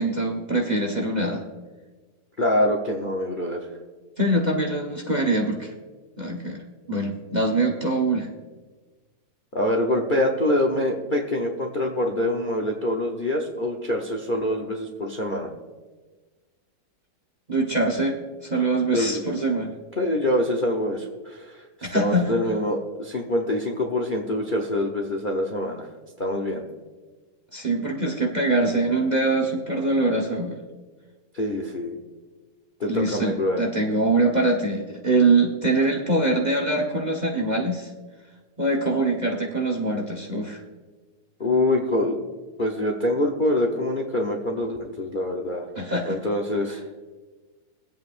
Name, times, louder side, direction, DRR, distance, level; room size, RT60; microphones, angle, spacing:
voice 1, 0.0-1.4 4.2-5.7 6.2-8.3 17.5-19.7 21.8-22.3 27.5-30.6 32.9-37.9 38.6-40.6 45.7-46.2 46.7-46.8, right 2 dB, 30° right, 1 dB, 0.9 m, -23 dB
voice 2, 2.4-3.7 9.5-15.5 18.9-19.2 20.0-25.9 26.2-26.6 31.3-32.0 32.8-33.6 41.4-42.3 42.6-45.6 46.1-46.8, left 1 dB, 40° left, 2 dB, 0.8 m, -25 dB
23.0 x 8.3 x 2.5 m, 1.3 s
omnidirectional pair, 2.1 m